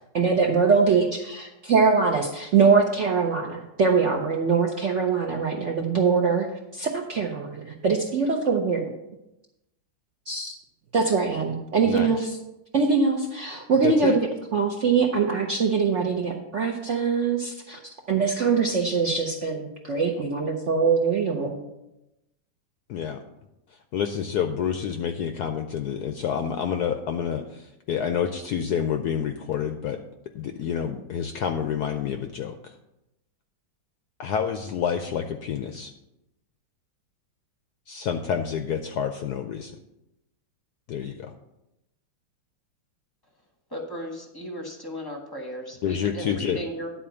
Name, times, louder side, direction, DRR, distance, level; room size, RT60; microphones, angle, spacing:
voice 1, 0.1-6.5 6.7-8.9 10.3-10.5 10.9-12.4 12.7-17.8 18.1-21.6, right 5 dB, 60° right, 1 dB, 0.8 m, -23 dB
voice 2, 11.8-12.2 13.8-14.2 22.9-23.2 23.7-30.0 30.3-32.7 34.2-35.9 37.9-39.8 40.9-41.3 45.8-46.6, left 8 dB, 75° left, 7 dB, 0.9 m, -28 dB
voice 3, 43.7-46.9, equal, 15° left, 2 dB, 0.9 m, -35 dB
10.0 x 4.3 x 6.9 m, 0.92 s
omnidirectional pair, 2.1 m